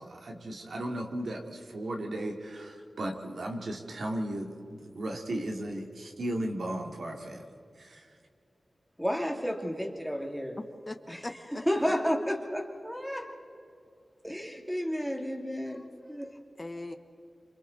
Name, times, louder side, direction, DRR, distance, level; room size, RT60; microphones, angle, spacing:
voice 1, 0.0-7.4 7.8-8.0, right 1 dB, 75° right, 1 dB, 2.5 m, -36 dB
voice 2, 9.0-10.6 11.1-11.2 11.5-13.3 14.2-15.8 16.1-16.3, equal, ahead, 2 dB, 2.5 m, -31 dB
voice 3, 10.9-12.0 15.7-15.9 16.3-17.0, left 2 dB, 25° left, 7 dB, 1.2 m, -41 dB
27.5 x 27.0 x 4.1 m, 2.5 s
wide cardioid pair, 90°, 0 cm